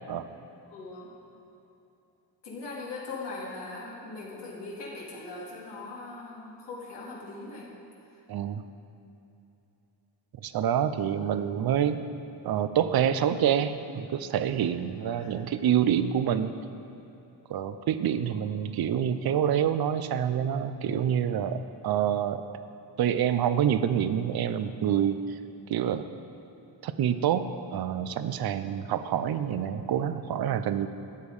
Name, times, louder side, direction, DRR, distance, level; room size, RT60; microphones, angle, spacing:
voice 1, 0.7-1.1 2.4-7.7 15.2-15.3 18.2-18.4, left 3 dB, 80° left, -5 dB, 2.3 m, -40 dB
voice 2, 8.3-8.6 10.4-12.1 12.4-16.5 17.5-22.4 23.0-25.2 25.7-26.0 26.8-27.4 27.7-30.9, right 9 dB, 60° right, 11 dB, 0.7 m, -27 dB
12.5 x 8.6 x 4.9 m, 2.9 s
cardioid pair, 105°, 42 cm